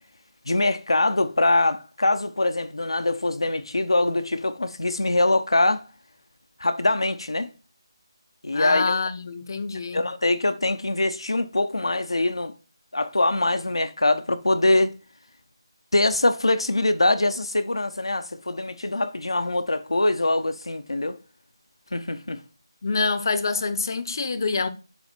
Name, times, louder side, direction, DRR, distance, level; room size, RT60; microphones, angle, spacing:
voice 1, 0.5-5.8 6.6-7.5 8.4-9.0 9.9-12.5 12.9-14.9 15.9-21.2 21.9-22.4, left 2 dB, 85° left, 0.8 m, -23 dB
voice 2, 8.5-10.0 22.8-24.7, left 4 dB, 50° left, 0.7 m, -26 dB
6.9 x 3.2 x 4.4 m
figure-of-eight pair, 160°, 3 cm